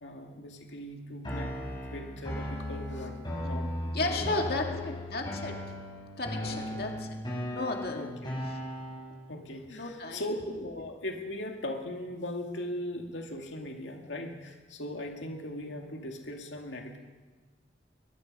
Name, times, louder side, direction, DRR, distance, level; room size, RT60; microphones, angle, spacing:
voice 1, 0.0-1.6 1.9-4.3 4.5-4.9 6.4-6.8 7.9-8.3 9.3-17.0, left 1 dB, 85° left, 2 dB, 2.2 m, -39 dB
sound 1, 1.2-9.2, left 1 dB, 25° left, 5.5 m, -37 dB
voice 2, 3.9-5.7 6.2-7.1 7.5-8.0 9.7-10.2, left 2 dB, 55° left, 2 dB, 2.2 m, -33 dB
22.5 x 21.5 x 5.4 m, 1.3 s
head